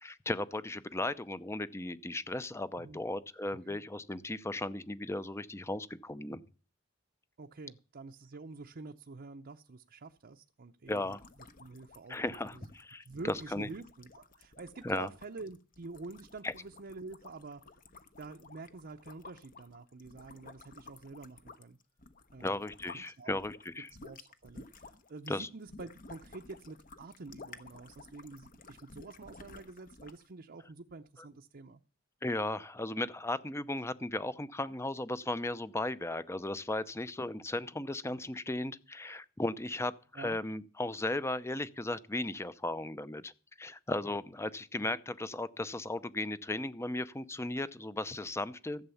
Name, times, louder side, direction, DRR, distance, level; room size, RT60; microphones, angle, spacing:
voice 1, 0.0-6.4 10.9-11.2 12.1-13.7 14.8-15.1 16.4-16.5 22.4-23.9 25.3-25.5 32.2-43.3 43.6-48.9, left 2 dB, 15° left, 0.6 m, -36 dB
voice 2, 7.4-11.2 11.6-12.6 13.1-17.6 18.2-21.8 22.3-22.6 22.9-23.4 24.0-31.8 40.1-40.4 44.8-44.9, right 3 dB, 50° right, 0.7 m, -47 dB
sound 1, 10.9-23.1 23.4-30.3, left 3 dB, 45° left, 1.0 m, -54 dB
14.5 x 8.0 x 7.0 m
head